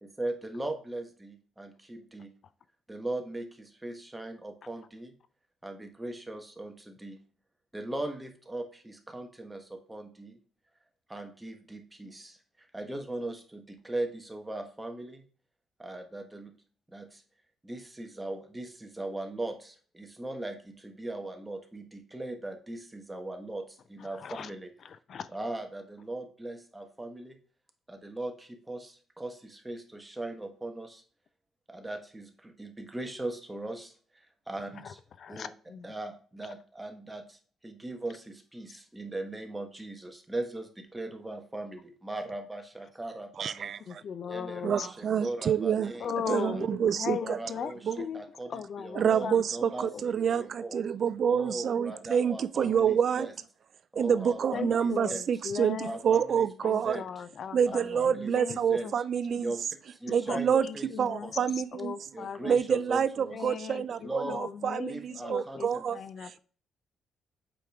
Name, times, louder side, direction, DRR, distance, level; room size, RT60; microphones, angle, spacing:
voice 1, 0.0-2.3 2.9-5.1 5.6-7.2 7.7-10.4 11.1-15.2 15.8-16.5 16.9-17.2 17.6-24.7 25.3-27.4 27.9-31.0 31.7-35.0 35.3-35.5 35.8-43.7 44.3-46.7 47.2-47.8 48.1-50.8 51.3-53.3 53.9-55.2 55.8-57.1 57.7-58.9 59.4-59.6 59.9-61.5 62.1-63.4 64.0-64.4 64.8-66.0, right 2 dB, 10° right, 1.3 m, -39 dB
voice 2, 24.0-24.5 24.8-25.4 34.7-35.9 43.9-44.9 46.0-49.4 49.9-50.0 54.5-56.0 56.6-58.9 60.3-61.4 61.7-62.6 63.3-66.4, left 7 dB, 55° left, 0.4 m, -38 dB
voice 3, 43.4-44.0 44.6-45.9 46.3-47.4 47.9-48.0 49.0-53.3 54.0-57.0 57.5-59.5 60.1-60.7 61.0-61.9 62.5-66.4, right 7 dB, 55° right, 0.3 m, -27 dB
7.5 x 5.1 x 3.5 m
cardioid pair, 90°, 0 cm